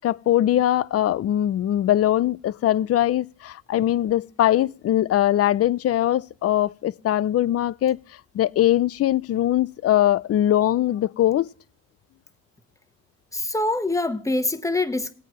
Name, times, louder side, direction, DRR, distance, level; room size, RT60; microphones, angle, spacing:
voice 1, 0.0-8.0 8.3-11.5, left 12 dB, 50° left, 0.5 m, -21 dB
voice 2, 13.3-15.1, left 2 dB, 10° left, 1.0 m, -24 dB
20.0 x 8.4 x 3.1 m
cardioid pair, 90°, 30 cm